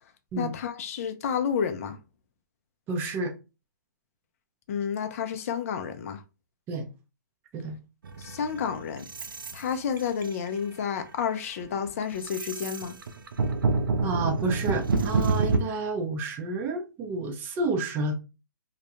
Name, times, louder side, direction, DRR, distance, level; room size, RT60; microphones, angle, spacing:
voice 1, 0.4-2.0 4.7-6.2 8.2-9.1 9.5-13.0, left 7 dB, 45° left, 0.5 m, -30 dB
voice 2, 2.9-3.3 6.7-6.8 7.5-7.8 14.0-18.1, right 3 dB, 20° right, 0.5 m, -30 dB
sound 1, 8.0-9.6 10.0-10.5 11.0-11.2 11.6-15.6, right 4 dB, 85° right, 0.4 m, -27 dB
2.3 x 2.1 x 2.8 m
hypercardioid pair, 140°, 11 cm